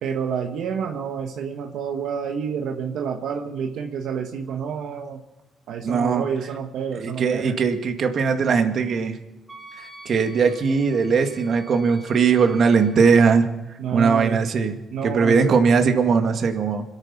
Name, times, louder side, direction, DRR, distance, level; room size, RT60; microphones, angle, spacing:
voice 1, 0.0-5.2 5.7-7.5 13.8-14.4 14.9-15.5, right 7 dB, 80° right, 2 dB, 1.4 m, -28 dB
voice 2, 5.8-6.3 7.0-9.2 9.8-13.5 13.9-14.8 15.0-16.8, right 5 dB, 55° right, 5 dB, 2.0 m, -20 dB
Wind instrument woodwind instrument, 9.5-13.1, right 1 dB, 15° right, 2.2 m, -46 dB
26.0 x 9.1 x 5.9 m, 1.0 s
cardioid pair, 90°, 0 cm